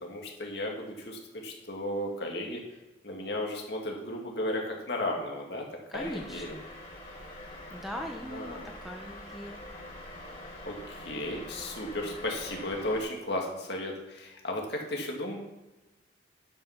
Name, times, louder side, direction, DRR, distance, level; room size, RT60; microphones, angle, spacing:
voice 1, 0.0-2.6 3.0-5.7 5.9-6.6 8.3-8.7 10.7-15.5, left 1 dB, 60° left, 0 dB, 2.1 m, -34 dB
sound 1, 5.9-13.0, left 1 dB, 30° left, 3.6 m, -45 dB
voice 2, 5.9-6.6 7.7-9.6, equal, ahead, 2 dB, 0.6 m, -40 dB
11.0 x 5.7 x 5.8 m, 1.1 s
head